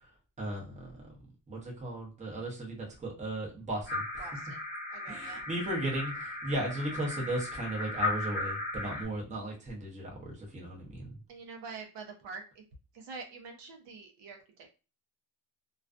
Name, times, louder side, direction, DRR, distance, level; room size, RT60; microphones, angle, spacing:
voice 1, 0.4-1.1 1.5-4.4 5.1-11.1, right 1 dB, 15° right, -2 dB, 0.6 m, -36 dB
sound 1, 3.9-9.0, left 2 dB, 70° left, 1.0 m, -36 dB
voice 2, 4.2-4.6 4.9-5.4 11.3-12.6 12.9-14.7, right 4 dB, 70° right, 3 dB, 0.6 m, -46 dB
2.3 x 2.3 x 2.3 m, 0.33 s
cardioid pair, 145°, 44 cm